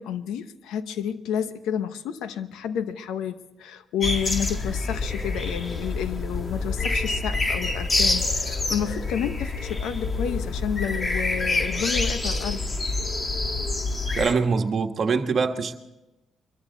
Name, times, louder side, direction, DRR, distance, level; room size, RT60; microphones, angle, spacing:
voice 1, 0.0-12.6, left 8 dB, 90° left, 1.0 m, -30 dB
sound 1, 4.0-14.3, left 3 dB, 30° left, 1.7 m, -27 dB
voice 2, 14.1-15.7, right 5 dB, 50° right, 1.5 m, -23 dB
23.5 x 14.0 x 4.0 m
cardioid pair, 90°, 0 cm